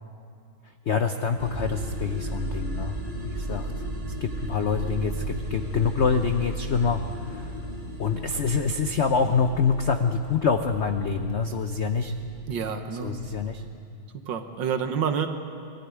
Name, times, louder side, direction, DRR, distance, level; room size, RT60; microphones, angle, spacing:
voice 1, 0.9-3.0 3.3-3.7 4.2-7.6 8.0-12.1 13.0-13.6, left 5 dB, 75° left, 7 dB, 0.6 m, -26 dB
sound 1, 1.4-13.7, equal, 40° right, 3.9 m, -34 dB
voice 2, 12.5-13.2 14.3-15.3, right 7 dB, 65° right, 7 dB, 1.8 m, -28 dB
23.0 x 14.0 x 9.6 m, 2.5 s
omnidirectional pair, 2.2 m